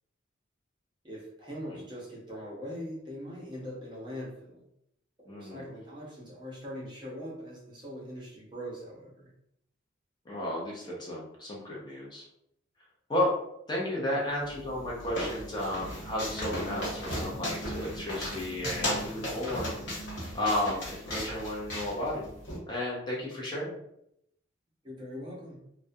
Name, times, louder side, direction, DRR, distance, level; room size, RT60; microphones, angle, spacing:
voice 1, 1.0-4.6 5.2-9.3 24.8-25.6, equal, 25° right, -4 dB, 0.6 m, -41 dB
voice 2, 5.3-5.6 10.3-12.2 13.1-13.3 13.7-20.0 20.3-22.2 22.7-23.8, left 1 dB, 20° left, -4 dB, 0.5 m, -33 dB
sound 1, 14.4-22.6, equal, 75° left, 0.9 m, -36 dB
2.3 x 2.1 x 2.6 m, 0.76 s
head